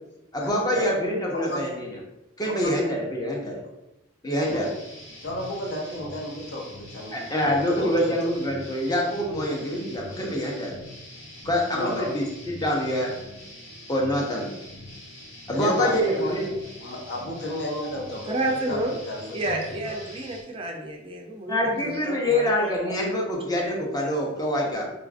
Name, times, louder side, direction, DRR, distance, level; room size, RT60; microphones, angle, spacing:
voice 1, 0.3-2.0 2.4-3.6 4.2-4.7 7.1-10.8 11.4-13.1 13.9-14.5 15.5-16.5 21.5-24.9, equal, 20° left, -1 dB, 0.6 m, -25 dB
voice 2, 1.3-1.6 2.4-2.8 4.4-4.7 5.2-8.3 11.7-12.1 15.5-18.8 19.1-19.6 19.9-20.0 21.8-21.9, left 1 dB, 60° left, -1 dB, 0.6 m, -32 dB
sound 1, 4.4-20.4, equal, 75° left, 1.0 m, -44 dB
voice 3, 18.3-19.0 19.3-22.9, right 2 dB, 30° right, 1 dB, 0.4 m, -30 dB
3.9 x 2.4 x 2.4 m, 0.92 s
head